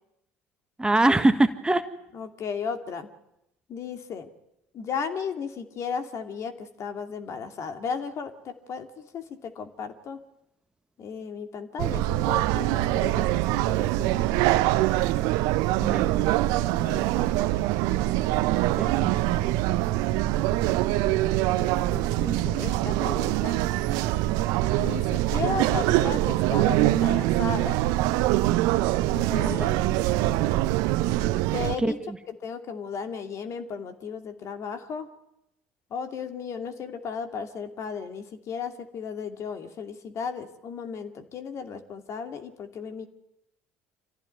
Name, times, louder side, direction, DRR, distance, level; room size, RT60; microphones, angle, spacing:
voice 1, 0.8-1.9 15.8-16.1 18.8-19.1 29.5-29.7 31.8-31.9, right 2 dB, 10° right, 9 dB, 1.5 m, -23 dB
voice 2, 2.1-3.1 3.7-4.3 4.7-10.2 11.0-14.2 16.8-17.3 21.4-23.6 24.7-27.8 29.1-30.4 31.5-32.0 32.4-35.1 35.9-43.1, left 6 dB, 45° left, 6 dB, 2.6 m, -35 dB
sound 1, 11.8-31.8, right 16 dB, 65° right, 0.9 m, -24 dB
26.5 x 16.0 x 9.5 m, 0.85 s
hypercardioid pair, 60°, 7 cm